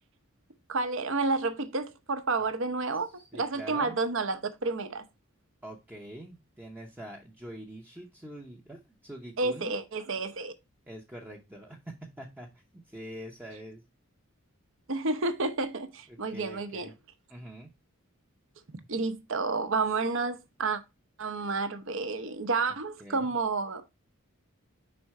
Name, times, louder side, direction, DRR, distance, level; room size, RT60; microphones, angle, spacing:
voice 1, 0.7-5.0 9.4-10.5 14.9-16.9 18.9-20.8 21.2-23.8, right 3 dB, 60° right, 0.8 m, -30 dB
voice 2, 3.0-4.0 5.6-9.7 10.9-11.8 12.2-13.8 16.1-16.9 17.3-17.7 23.0-23.3, right 1 dB, 10° right, 0.7 m, -45 dB
5.3 x 4.3 x 4.6 m
head